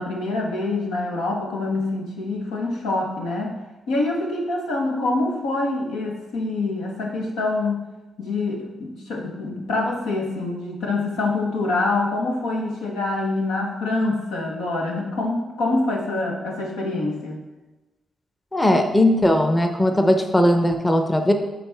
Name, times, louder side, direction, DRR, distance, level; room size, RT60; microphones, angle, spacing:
voice 1, 0.0-3.6 3.9-7.8 8.2-17.4, left 2 dB, 90° left, -1 dB, 1.2 m, -25 dB
voice 2, 18.5-21.3, left 1 dB, 15° left, 5 dB, 0.8 m, -18 dB
7.7 x 4.2 x 3.5 m, 1.1 s
supercardioid pair, 55°, 0 cm